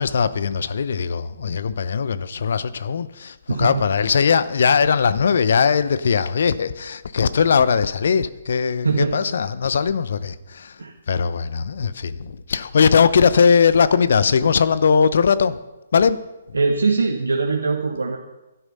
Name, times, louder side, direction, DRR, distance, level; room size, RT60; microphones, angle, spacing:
voice 1, 0.0-10.8 11.1-15.6 15.9-16.2 16.5-16.6, left 6 dB, 60° left, 15 dB, 0.8 m, -19 dB
voice 2, 8.8-9.2 10.8-10.9 16.5-18.2, right 4 dB, 80° right, 1 dB, 1.4 m, -21 dB
12.5 x 11.5 x 5.5 m, 1.0 s
figure-of-eight pair, 135°, 0 cm